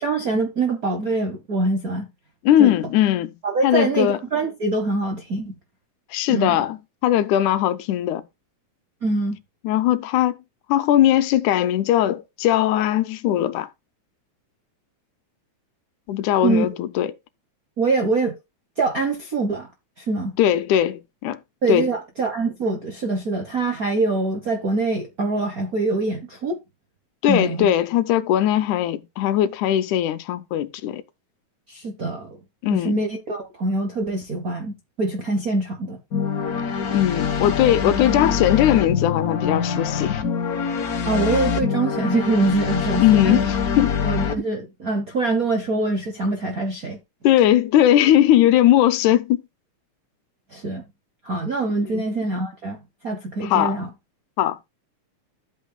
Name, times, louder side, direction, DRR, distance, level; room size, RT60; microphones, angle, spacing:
voice 1, 0.0-2.1 2.6-2.7 3.4-5.5 6.3-6.6 9.0-9.4 16.4-16.7 17.8-18.3 18.8-19.7 20.0-20.3 21.6-26.6 27.3-27.7 31.7-32.4 32.7-36.0 41.0-43.4 44.0-47.0 50.5-50.8 51.2-52.8 53.0-53.9, right 3 dB, 60° right, 0.9 m, -24 dB
voice 2, 2.4-3.3 3.6-4.2 6.1-8.2 9.6-10.4 10.7-13.7 16.1-17.1 20.4-21.4 21.7-21.9 27.2-31.0 32.6-33.0 36.9-40.2 43.0-44.0 47.2-49.4 51.9-52.0 53.4-53.8 54.4-54.7, left 12 dB, 85° left, 2.2 m, -19 dB
sound 1, 36.1-44.3, left 6 dB, 65° left, 0.9 m, -24 dB
12.5 x 8.4 x 2.2 m
omnidirectional pair, 3.4 m